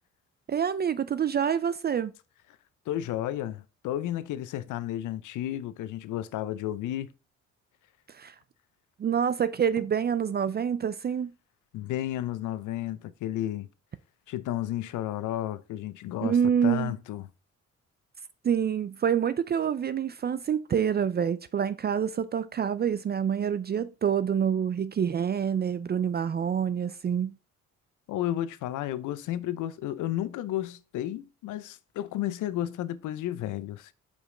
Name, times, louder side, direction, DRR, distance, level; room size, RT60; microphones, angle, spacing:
voice 1, 0.5-2.1 8.1-8.4 9.0-11.3 16.2-16.9 18.4-27.3, right 8 dB, 35° right, 0.4 m, -27 dB
voice 2, 2.9-7.1 11.7-13.7 14.3-17.3 28.1-33.9, left 13 dB, 80° left, 0.6 m, -32 dB
5.2 x 5.0 x 3.8 m
cardioid pair, 90°, 30 cm